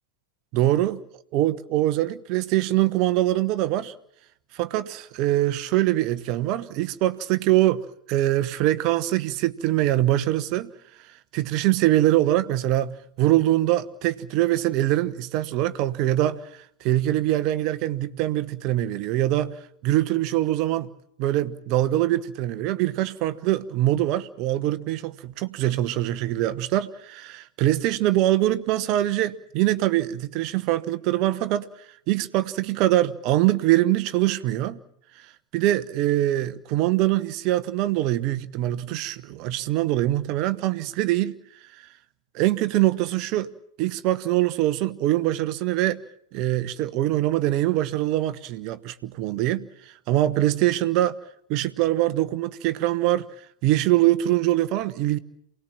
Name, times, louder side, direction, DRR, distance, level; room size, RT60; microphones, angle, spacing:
voice 1, 0.5-1.0 1.3-3.9 4.5-7.8 8.1-10.7 11.3-16.4 16.8-19.6 19.8-20.9 21.2-31.7 32.1-34.8 35.5-41.4 42.3-43.5 43.8-46.0 46.3-49.7 50.1-51.2 51.5-53.3 53.6-55.2, right 15 dB, 40° right, 1.1 m, -23 dB
28.0 x 19.0 x 7.3 m
figure-of-eight pair, 90°, 0 cm